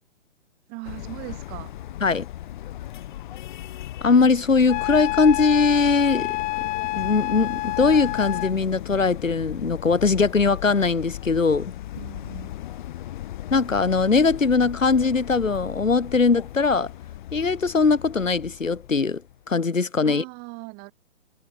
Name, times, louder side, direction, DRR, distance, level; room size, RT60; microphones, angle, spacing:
voice 1, 0.7-1.7 12.0-12.5 20.0-20.9, right 31 dB, 25° right, 6.0 m, -39 dB
sound 1, 0.9-19.7, left 13 dB, 40° left, 5.8 m, -37 dB
voice 2, 4.0-6.4 6.9-11.7 13.5-16.9 17.3-19.2 19.5-20.2, left 4 dB, 80° left, 1.7 m, -21 dB
Wind instrument woodwind instrument, 4.7-8.6, left 20 dB, 20° left, 3.7 m, -28 dB
figure-of-eight pair, 130°, 39 cm